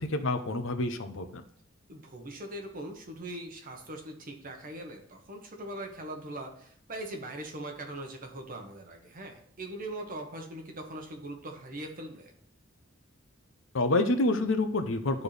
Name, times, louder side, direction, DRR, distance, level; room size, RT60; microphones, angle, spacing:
voice 1, 0.0-1.4 13.7-15.2, left 2 dB, 70° left, 8 dB, 0.8 m, -28 dB
voice 2, 1.9-12.3, right 1 dB, 45° right, 3 dB, 1.2 m, -41 dB
12.5 x 4.3 x 3.3 m, 0.63 s
head